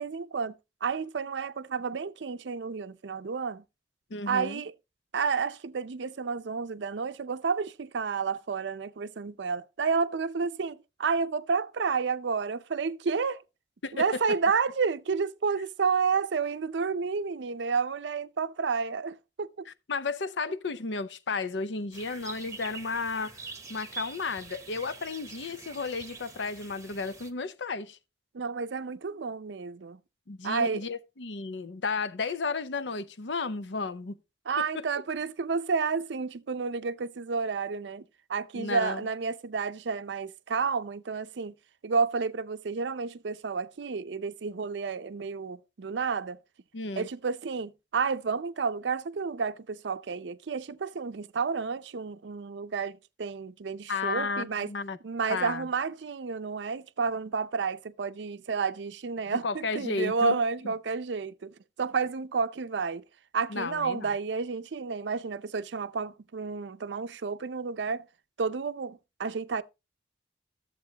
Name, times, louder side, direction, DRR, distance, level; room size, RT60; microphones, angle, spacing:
voice 1, 0.0-3.6 4.3-4.7 5.1-13.4 13.9-19.7 28.3-30.0 30.4-30.8 34.5-38.0 38.3-41.5 41.8-46.4 47.0-54.7 55.0-63.0 63.3-68.0 68.4-69.6, right 5 dB, 75° right, 0.5 m, -31 dB
voice 2, 4.1-4.6 13.8-14.2 19.7-23.4 23.7-28.0 30.3-34.1 34.6-34.8 38.5-39.0 46.7-47.1 53.9-55.0 55.3-55.7 59.4-60.7 63.5-64.1, left 4 dB, 80° left, 0.7 m, -33 dB
sound 1, 21.9-27.3, right 4 dB, 15° right, 0.9 m, -45 dB
13.5 x 7.6 x 2.8 m
head